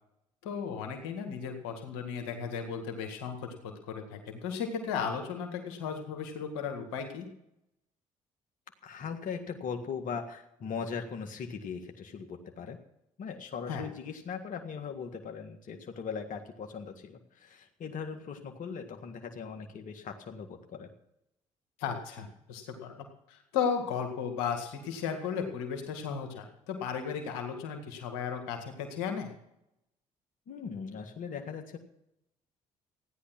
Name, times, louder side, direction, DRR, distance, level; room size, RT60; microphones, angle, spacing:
voice 1, 0.4-7.3 13.7-13.8 21.8-22.9 23.3-29.3, left 6 dB, 85° left, 4 dB, 2.0 m, -35 dB
voice 2, 8.8-12.8 13.2-20.9 30.5-31.8, left 6 dB, 60° left, 5 dB, 1.8 m, -39 dB
15.0 x 10.0 x 6.0 m, 0.81 s
hypercardioid pair, 55°, 15 cm